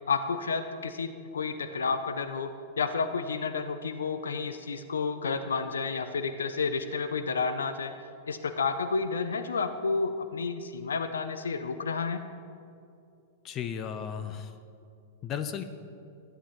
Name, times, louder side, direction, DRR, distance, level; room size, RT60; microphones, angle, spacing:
voice 1, 0.1-2.5 2.8-7.9 8.3-12.2, left 4 dB, 90° left, 9 dB, 0.4 m, -31 dB
voice 2, 13.4-14.5 15.2-15.6, left 8 dB, 35° left, 9 dB, 0.6 m, -34 dB
12.5 x 8.9 x 3.0 m, 2.5 s
hypercardioid pair, 115°, 0 cm